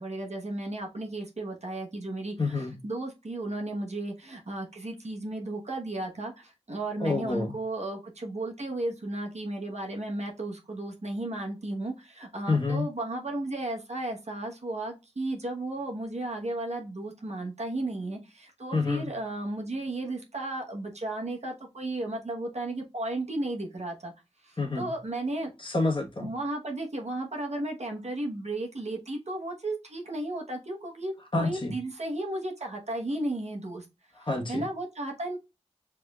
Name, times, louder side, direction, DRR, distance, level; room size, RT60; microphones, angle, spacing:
voice 1, 0.0-2.3 2.8-24.1 24.4-25.5 26.2-33.8 34.5-35.4, right 2 dB, 75° right, 1.1 m, -34 dB
voice 2, 2.4-2.7 7.0-7.6 12.5-12.9 18.7-19.1 24.6-24.9 25.6-26.3 31.3-31.7 34.2-34.6, left 3 dB, 45° left, 1.3 m, -28 dB
5.3 x 3.5 x 2.4 m
wide cardioid pair, 50°, 12 cm